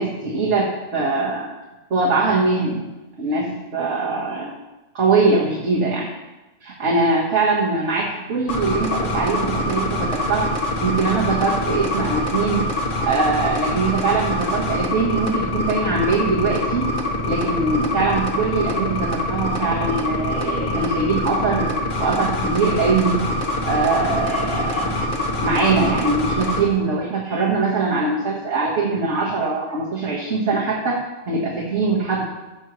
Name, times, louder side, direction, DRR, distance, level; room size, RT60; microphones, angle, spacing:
voice 1, 0.0-1.5 1.9-2.9 3.2-4.5 4.9-6.1 6.6-10.5 10.8-12.7 13.0-16.9 17.3-23.3 23.6-25.0 25.4-31.0 31.3-32.2, right 3 dB, 85° right, -5 dB, 1.7 m, -22 dB
sound 1, 8.5-26.6, left 1 dB, 45° left, 1.3 m, -24 dB
15.0 x 6.3 x 3.1 m, 1.1 s
omnidirectional pair, 1.2 m